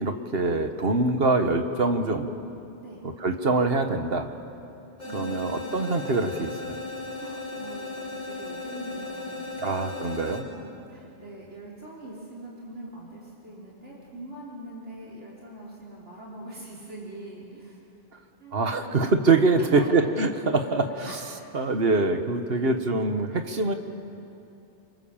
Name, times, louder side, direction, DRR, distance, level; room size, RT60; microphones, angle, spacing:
voice 1, 0.0-2.3 3.0-4.3 5.1-6.8 9.6-10.4 18.5-21.2 21.5-23.7, right 3 dB, 60° right, 7 dB, 1.5 m, -24 dB
sound 1, 5.0-10.4, left 3 dB, 80° left, 4.6 m, -36 dB
voice 2, 5.0-5.7 7.2-7.9 8.2-9.7 10.0-17.8 18.4-19.0 19.6-19.9 21.0-21.2 22.5-22.9, right 1 dB, 85° right, -5 dB, 4.1 m, -42 dB
26.5 x 25.0 x 7.3 m, 2.7 s
omnidirectional pair, 1.2 m